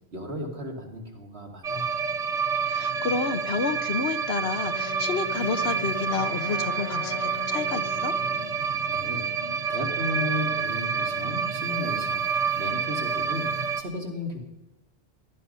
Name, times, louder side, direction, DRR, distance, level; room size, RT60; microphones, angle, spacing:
voice 1, 0.1-2.0 8.6-9.3 9.7-12.2 12.6-14.4, left 1 dB, 70° right, 1 dB, 2.9 m, -35 dB
sound 1, 1.6-13.8, right 6 dB, 40° right, 1.0 m, -28 dB
voice 2, 2.7-8.1, left 5 dB, 75° left, 11 dB, 1.2 m, -30 dB
Wind instrument woodwind instrument, 4.6-8.6, left 4 dB, 30° left, 1.2 m, -40 dB
18.0 x 13.0 x 5.5 m, 1.0 s
omnidirectional pair, 1.1 m